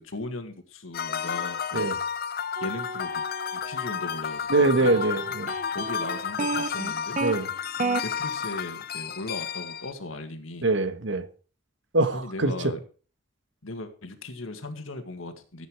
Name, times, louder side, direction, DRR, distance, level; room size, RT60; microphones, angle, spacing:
voice 1, 0.0-2.0 2.6-3.2 3.5-5.0 5.7-7.2 8.0-10.7 12.1-12.8 13.6-15.7, left 2 dB, 85° left, 7 dB, 2.0 m, -37 dB
sound 1, 0.9-9.9, left 7 dB, 50° left, 0.7 m, -32 dB
sound 2, 2.6-4.1 4.8-7.3 7.8-8.0, right 3 dB, 40° right, 0.8 m, -32 dB
voice 2, 4.5-5.5 7.2-7.5 10.6-11.3 11.9-12.6, right 2 dB, 65° right, 11 dB, 1.3 m, -23 dB
15.0 x 8.4 x 4.7 m, 0.38 s
head